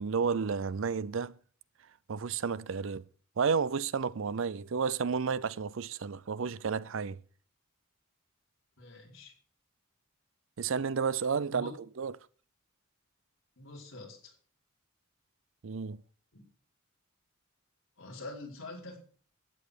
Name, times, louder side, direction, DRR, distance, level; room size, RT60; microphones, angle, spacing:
voice 1, 0.0-1.3 2.1-3.0 3.4-7.2 10.6-11.7 12.0-12.1 15.6-16.0, right 5 dB, 65° right, 0.5 m, -31 dB
voice 2, 8.8-9.3 11.5-11.7 13.6-14.3 16.3-16.4 18.0-19.0, left 2 dB, 70° left, 4.7 m, -45 dB
13.0 x 8.9 x 5.1 m
head